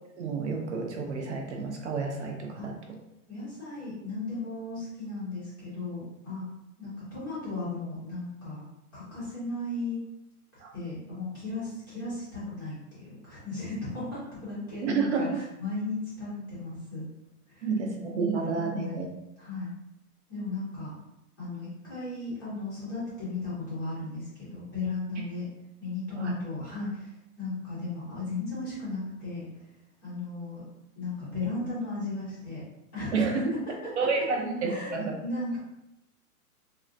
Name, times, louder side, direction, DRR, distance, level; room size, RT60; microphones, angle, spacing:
voice 1, 0.2-2.7 10.6-10.7 14.8-15.4 17.6-19.1 26.2-26.3 33.1-33.4 34.0-35.1, right 4 dB, 50° right, 2 dB, 0.5 m, -29 dB
voice 2, 3.3-6.4 6.8-8.6 8.9-10.0 10.7-17.0 17.5-17.7 18.5-18.9 19.4-19.7 20.3-20.9 21.4-25.5 25.8-29.4 30.0-30.6 31.0-32.6 32.9-33.4 34.6-35.6, left 2 dB, 15° left, -10 dB, 0.5 m, -36 dB
3.6 x 2.1 x 2.5 m, 0.90 s
hypercardioid pair, 165°, 45 cm